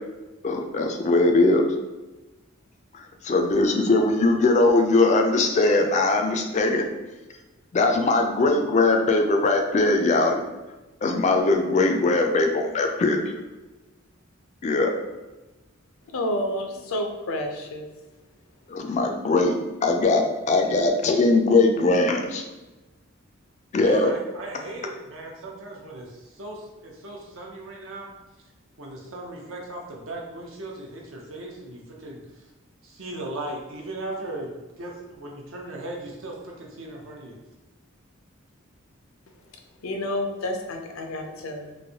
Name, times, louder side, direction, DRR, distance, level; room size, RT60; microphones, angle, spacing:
voice 1, 0.4-1.6 2.9-6.8 7.7-10.4 11.0-13.4 14.6-14.9 18.7-19.5 19.8-22.4 23.7-24.1, left 2 dB, 35° left, 3 dB, 0.3 m, -20 dB
voice 2, 16.1-17.9 39.8-41.8, left 1 dB, 85° left, 3 dB, 0.5 m, -29 dB
voice 3, 23.8-28.1 28.8-32.2 32.8-37.3, right 2 dB, 70° right, -1 dB, 0.7 m, -37 dB
3.1 x 2.6 x 2.8 m, 1.1 s
head